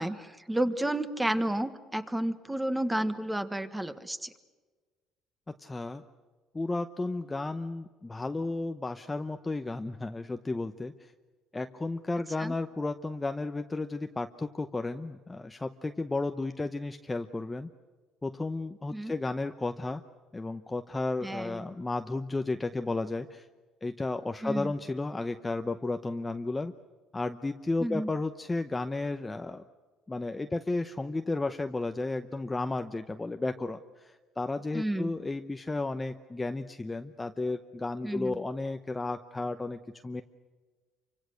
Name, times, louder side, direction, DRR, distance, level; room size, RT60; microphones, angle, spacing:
voice 1, 0.0-4.3 12.4-12.5 18.9-19.1 21.2-21.6 24.4-24.7 27.8-28.1 34.7-35.1 38.0-38.4, right 1 dB, 5° right, 11 dB, 1.4 m, -31 dB
voice 2, 5.6-6.0 6.5-10.9 11.5-17.7 18.2-20.0 20.3-23.4 23.8-26.7 27.1-29.6 30.1-40.2, left 2 dB, 15° left, 7 dB, 0.8 m, -33 dB
28.5 x 25.0 x 6.5 m, 1.4 s
cardioid pair, 130°, 0 cm